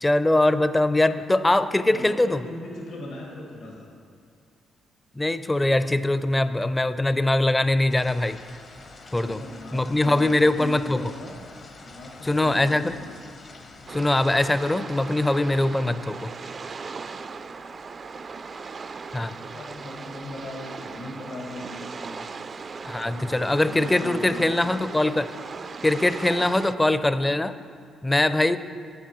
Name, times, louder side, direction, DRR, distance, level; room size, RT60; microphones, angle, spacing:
voice 1, 0.0-2.4 5.2-8.4 9.1-9.4 9.7-11.0 12.2-13.0 13.9-16.3 19.1-19.3 22.9-25.3 25.8-27.6 28.0-28.6, left 1 dB, 15° left, 12 dB, 0.4 m, -22 dB
voice 2, 1.6-3.9 9.1-11.4 11.8-13.1 13.8-13.9 17.4-17.5 19.1-22.3 22.9-24.5 26.7-26.9, left 1 dB, 75° left, -2 dB, 1.7 m, -39 dB
sound 1, 7.9-14.8, left 3 dB, 55° left, 1.0 m, -46 dB
sound 2, 13.9-26.7, right 4 dB, 45° right, 0.3 m, -38 dB
12.0 x 8.0 x 3.1 m, 2.3 s
supercardioid pair, 55°, 0 cm